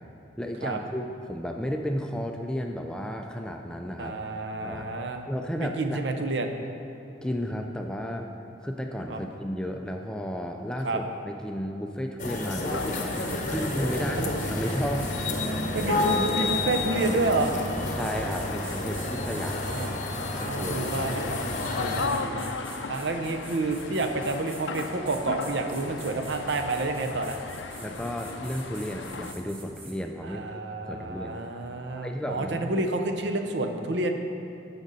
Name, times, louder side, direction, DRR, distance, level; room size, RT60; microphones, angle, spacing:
voice 1, 0.4-4.2 4.6-4.9 5.3-6.0 7.2-8.3 8.6-15.2 15.7-15.9 17.9-19.9 20.4-20.9 27.8-30.4 30.9-31.5 32.0-32.9, equal, 5° left, 3 dB, 0.3 m, -33 dB
voice 2, 4.0-5.3 5.6-6.5 9.1-9.2 10.8-11.0 13.9-14.4 15.7-17.5 19.7-19.9 20.4-21.5 21.8-22.5 22.9-27.4 30.2-34.1, right 2 dB, 65° right, 5 dB, 0.6 m, -29 dB
sound 1, 12.2-22.1, left 1 dB, 40° left, 0.8 m, -30 dB
sound 2, 12.2-19.9 20.4-21.8 22.1-29.9, right 3 dB, 30° right, 1.2 m, -46 dB
sound 3, 12.7-29.3, left 5 dB, 70° left, 0.5 m, -37 dB
13.5 x 5.3 x 4.0 m, 2.8 s
head